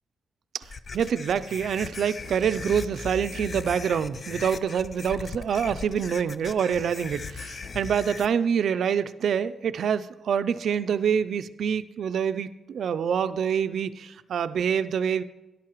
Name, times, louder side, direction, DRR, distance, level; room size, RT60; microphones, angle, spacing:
sound 1, 0.6-8.3, left 4 dB, 40° left, 0.4 m, -38 dB
voice 1, 0.9-15.2, right 7 dB, 70° right, 13 dB, 0.4 m, -26 dB
13.5 x 11.0 x 3.0 m, 1.1 s
wide cardioid pair, 130°, 0 cm